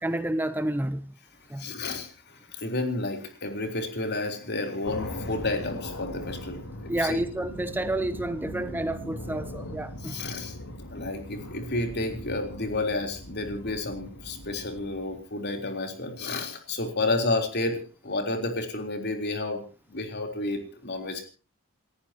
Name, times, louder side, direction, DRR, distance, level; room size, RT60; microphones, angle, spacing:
voice 1, 0.0-1.1 1.5-1.7 6.9-10.2, right 1 dB, 10° right, 11 dB, 0.7 m, -29 dB
voice 2, 1.6-6.6 7.0-7.2 10.0-10.6 10.9-19.6 19.9-21.2, left 2 dB, 50° left, 4 dB, 3.8 m, -31 dB
sound 1, 4.8-15.2, left 1 dB, 85° left, 3.7 m, -40 dB
29.0 x 14.5 x 2.9 m, 0.37 s
head